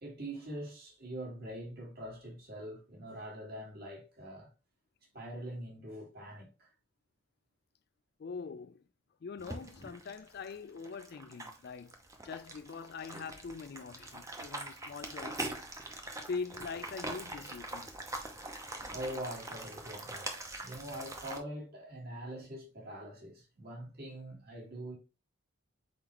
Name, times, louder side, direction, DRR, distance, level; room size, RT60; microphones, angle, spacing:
voice 1, 0.0-4.5 5.1-6.7 18.9-25.0, right 1 dB, 50° right, 1.7 m, -43 dB
voice 2, 8.2-8.8 9.2-11.9 12.2-15.7 16.3-17.9, left 5 dB, 50° left, 0.3 m, -43 dB
sound 1, 9.4-21.4, right 2 dB, 15° right, 0.6 m, -43 dB
4.3 x 3.9 x 2.9 m
head